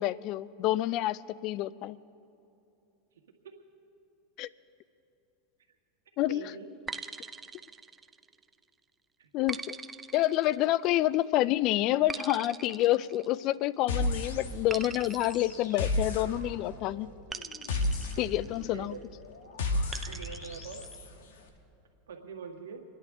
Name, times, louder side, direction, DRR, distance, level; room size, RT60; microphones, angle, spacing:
voice 1, 0.0-2.0 4.4-4.5 6.2-6.4 9.3-9.8 10.1-17.1 18.2-18.9, left 15 dB, 50° left, 20 dB, 0.4 m, -28 dB
voice 2, 6.3-6.7 9.2-9.3 18.6-19.0 20.1-20.8 22.1-22.8, right 6 dB, 90° right, 2 dB, 1.6 m, -43 dB
sound 1, 6.9-8.5 9.5-11.1 12.1-13.8 14.7-16.5 17.3-18.9 19.9-21.0, right 5 dB, 20° right, 0.5 m, -42 dB
sound 2, 13.9-14.8 15.0-21.1, left 2 dB, 80° left, 1.4 m, -33 dB
28.0 x 10.5 x 3.6 m, 2.7 s
hypercardioid pair, 110°, 0 cm